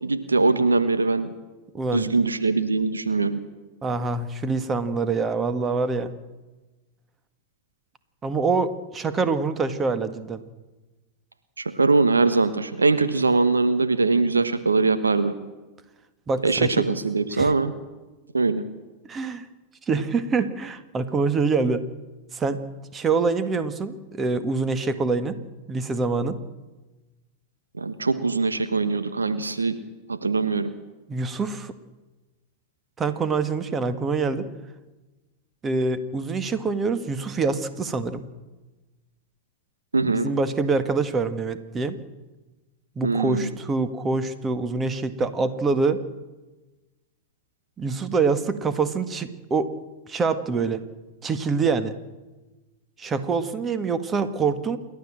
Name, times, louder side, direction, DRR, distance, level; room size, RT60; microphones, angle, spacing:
voice 1, 0.0-1.3 1.9-3.4 11.6-15.3 16.4-17.7 18.3-18.6 27.8-29.7 30.1-30.7 39.9-40.3 43.0-43.5, right 3 dB, 90° right, 11 dB, 1.3 m, -22 dB
voice 2, 1.7-2.1 3.8-6.1 8.2-10.4 16.3-16.7 17.3-17.5 19.1-19.5 19.9-21.8 22.3-22.6 22.9-25.4 25.7-26.4 31.1-31.7 33.0-34.5 35.6-38.2 40.0-42.0 42.9-46.0 47.8-49.7 50.1-50.8 51.2-51.9 53.0-54.8, right 4 dB, 25° right, 11 dB, 1.8 m, -25 dB
28.5 x 12.0 x 7.7 m, 1.1 s
hypercardioid pair, 95°, 0 cm